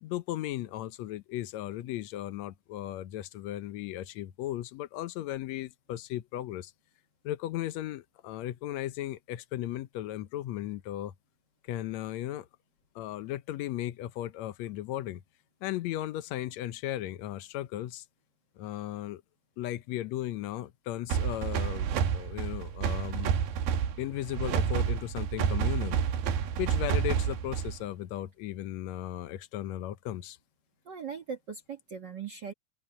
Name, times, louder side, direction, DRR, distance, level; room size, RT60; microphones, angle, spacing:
voice 1, 0.0-6.7 7.2-11.1 11.7-12.5 13.0-15.2 15.6-18.0 18.6-19.2 19.6-23.3 24.0-26.0 26.6-30.4, left 13 dB, 75° left, 1.7 m, -36 dB
sound 1, 21.1-27.9, right 7 dB, 85° right, 3.4 m, -29 dB
voice 2, 30.8-32.5, right 6 dB, 55° right, 1.2 m, -39 dB
open air
omnidirectional pair, 4.1 m